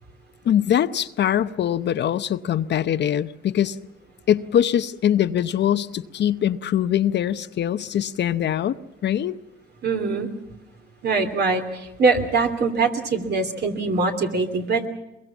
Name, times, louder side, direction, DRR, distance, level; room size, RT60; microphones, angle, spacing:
voice 1, 0.4-3.8 4.3-8.8 9.0-9.4, left 10 dB, 60° left, 0.8 m, -22 dB
voice 2, 9.8-10.3 11.0-11.6 12.0-14.9, right 4 dB, 55° right, 3.0 m, -22 dB
22.5 x 22.5 x 7.2 m
cardioid pair, 90°, 20 cm